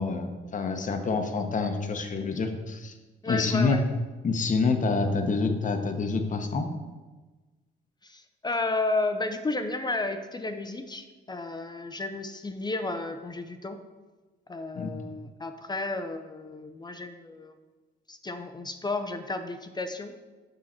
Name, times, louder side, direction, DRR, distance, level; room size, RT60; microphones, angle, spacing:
voice 1, 0.0-2.9 3.3-3.8 4.2-6.7 14.7-14.9, left 4 dB, 40° left, 6 dB, 0.9 m, -27 dB
voice 2, 3.2-3.8 8.0-13.8 14.5-17.5 18.1-20.1, left 2 dB, 20° left, 7 dB, 0.5 m, -32 dB
6.4 x 5.6 x 4.3 m, 1.3 s
cardioid pair, 90°, 20 cm